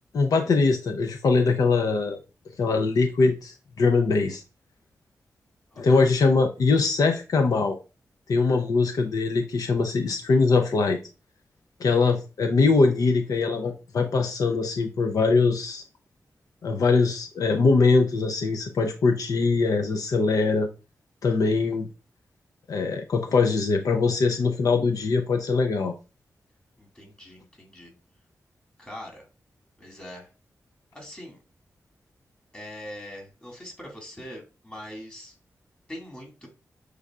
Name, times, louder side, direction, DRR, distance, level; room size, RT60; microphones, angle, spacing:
voice 1, 0.1-2.2 2.6-4.4 5.8-7.8 8.3-11.0 11.8-15.8 16.6-20.7 21.2-21.9 22.7-25.9, left 4 dB, 80° left, 0.6 m, -22 dB
voice 2, 5.7-6.0 26.8-27.9 28.8-29.2 29.8-30.3 30.9-31.4 32.5-35.3 35.9-36.5, equal, 20° left, 2.0 m, -42 dB
6.6 x 3.3 x 2.4 m
wide cardioid pair, 105°, 6 cm